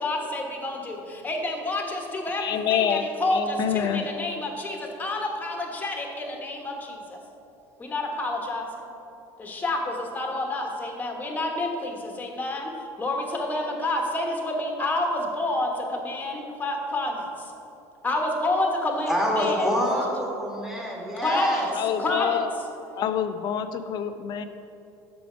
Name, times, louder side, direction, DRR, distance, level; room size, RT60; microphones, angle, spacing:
voice 1, 0.0-0.9 1.2-3.4 3.7-4.7 5.0-5.6 5.8-6.0 6.4-6.6 7.9-8.6 9.5-9.8 10.1-11.7 12.2-12.6 13.0-15.7 16.1-16.3 16.6-17.1 18.0-19.1 19.4-19.7 21.2-21.5 22.0-22.4, left 2 dB, 20° left, 2 dB, 1.2 m, -28 dB
voice 2, 2.4-3.1 3.3-4.1 21.8-22.5 23.0-24.4, left 9 dB, 50° left, 10 dB, 0.5 m, -26 dB
voice 3, 19.1-21.6, equal, 5° right, -3 dB, 1.7 m, -26 dB
6.9 x 5.0 x 5.0 m, 2.7 s
supercardioid pair, 95°, 9 cm